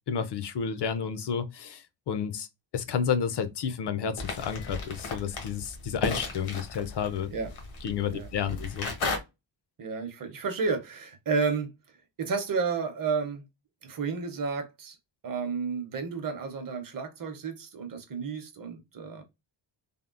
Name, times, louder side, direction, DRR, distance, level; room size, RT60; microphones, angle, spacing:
voice 1, 0.1-2.5 2.7-7.3 7.8-8.9, left 7 dB, 60° left, 0.5 m, -31 dB
sound 1, 4.2-9.2, left 3 dB, 85° left, 1.1 m, -35 dB
voice 2, 9.8-11.7 12.2-13.4 13.8-15.0 15.2-19.2, right 5 dB, 45° right, 0.7 m, -31 dB
3.5 x 2.0 x 2.4 m
wide cardioid pair, 165°, 47 cm